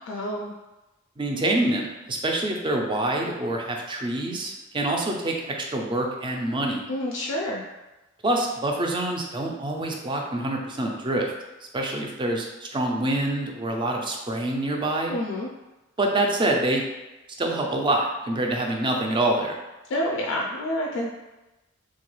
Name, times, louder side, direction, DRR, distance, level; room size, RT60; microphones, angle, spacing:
voice 1, 0.1-0.5 6.9-7.7 15.1-15.5 19.9-21.1, left 1 dB, 65° left, -1 dB, 0.3 m, -28 dB
voice 2, 1.2-6.8 8.2-11.3 11.7-15.1 16.0-16.8 17.4-19.6, right 1 dB, 25° right, 1 dB, 0.4 m, -26 dB
2.9 x 2.3 x 3.0 m, 1.0 s
head